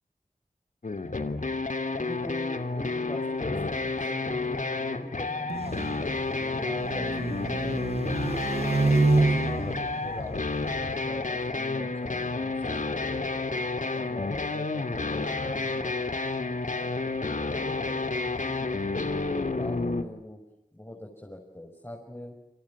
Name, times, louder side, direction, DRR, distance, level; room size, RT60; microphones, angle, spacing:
sound 1, 0.8-20.0, left 3 dB, 70° left, 2.8 m, -30 dB
voice 1, 1.9-6.1 6.4-8.0 8.4-10.6 10.9-13.2 13.5-16.0 17.5-20.4 20.7-22.4, left 1 dB, 15° left, 1 dB, 6.1 m, -43 dB
sound 2, 5.5-11.0, right 3 dB, 50° right, 1.2 m, -28 dB
29.5 x 27.5 x 7.4 m, 0.84 s
wide cardioid pair, 65°, 14 cm